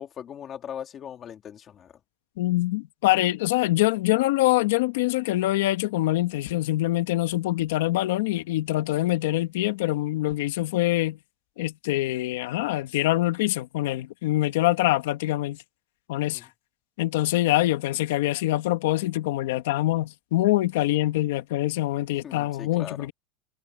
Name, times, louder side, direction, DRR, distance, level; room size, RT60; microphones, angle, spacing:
voice 1, 0.0-2.0 16.2-16.5 22.2-23.1, left 9 dB, 25° left, 2.3 m, -40 dB
voice 2, 2.4-11.2 11.6-15.6 16.1-16.5 17.0-23.1, left 16 dB, 85° left, 2.1 m, -24 dB
supercardioid pair, 165°, 0 cm